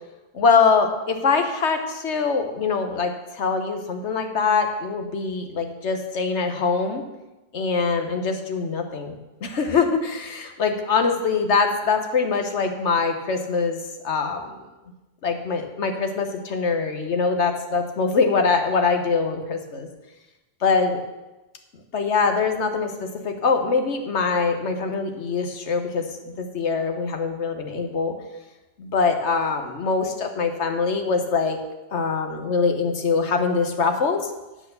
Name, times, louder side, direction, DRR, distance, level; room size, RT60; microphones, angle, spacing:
voice 1, 0.3-7.0 7.5-9.1 9.4-13.8 14.0-14.6 15.2-19.9 20.6-21.0 21.9-28.1 28.8-31.6 31.9-34.2, left 5 dB, 75° left, 6 dB, 1.4 m, -23 dB
8.7 x 6.4 x 6.9 m, 1.1 s
omnidirectional pair, 1.2 m